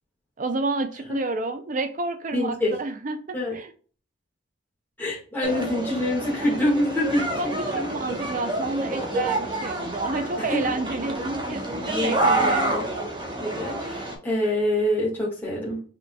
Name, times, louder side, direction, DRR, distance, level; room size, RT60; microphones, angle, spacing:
voice 1, 0.4-3.7 7.3-12.9, right 3 dB, 40° right, 0.5 m, -29 dB
voice 2, 2.3-2.7 3.3-3.5 5.0-7.3 7.7-7.9 10.4-10.6 11.8-13.1 13.4-15.8, left 1 dB, 10° left, 1.6 m, -26 dB
sound 1, 5.4-14.2, right 1 dB, 20° right, 1.1 m, -28 dB
5.7 x 3.7 x 2.3 m
head